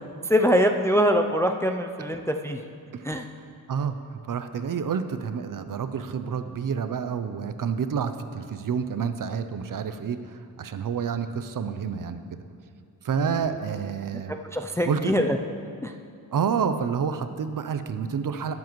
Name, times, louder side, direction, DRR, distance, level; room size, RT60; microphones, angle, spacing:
voice 1, 0.3-2.6 3.1-3.3 13.2-13.6 14.5-15.4 15.8-15.9, equal, 10° left, 5 dB, 0.3 m, -23 dB
voice 2, 3.7-12.4 13.0-14.3 14.8-15.1 16.3-18.5, right 6 dB, 55° right, 10 dB, 0.6 m, -29 dB
19.5 x 7.3 x 3.1 m, 2.5 s
wide cardioid pair, 145°, 39 cm